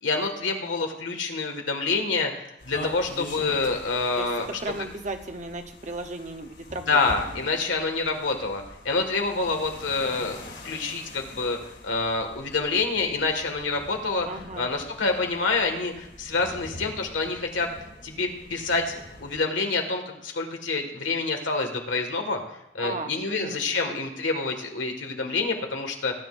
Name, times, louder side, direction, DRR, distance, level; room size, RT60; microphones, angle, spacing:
voice 1, 0.0-4.5 6.9-10.4 10.6-11.6 11.8-14.3 14.6-17.7 18.0-22.4 22.7-26.2, left 3 dB, 85° left, 3 dB, 1.8 m, -27 dB
sound 1, 2.6-19.4, left 1 dB, 65° left, 4.5 m, -44 dB
voice 2, 4.6-7.0 14.2-14.7 22.8-24.0, right 2 dB, 40° right, 6 dB, 0.8 m, -35 dB
19.5 x 9.8 x 2.6 m, 0.83 s
head